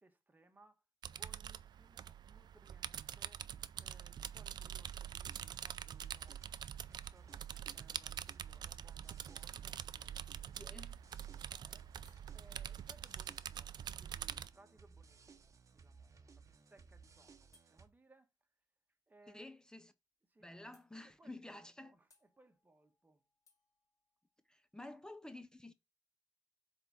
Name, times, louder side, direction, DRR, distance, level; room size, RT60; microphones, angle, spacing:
voice 1, 0.0-3.5 3.7-10.7 11.3-11.9 12.3-18.5 19.1-19.5 20.3-23.3, right 2 dB, 25° right, 1.3 m, -67 dB
sound 1, 1.0-14.5, right 9 dB, 85° right, 0.4 m, -45 dB
sound 2, 4.8-17.9, right 5 dB, 45° right, 0.9 m, -60 dB
voice 2, 10.6-11.0 19.3-19.9 20.4-21.9 24.5-25.7, left 2 dB, 10° left, 0.5 m, -51 dB
sound 3, 12.0-15.7 17.5-17.8 19.7-19.8 20.1-20.2 20.7-21.3 22.1-24.8, left 2 dB, 50° left, 2.2 m, -76 dB
8.0 x 3.7 x 5.5 m
wide cardioid pair, 105°, 7 cm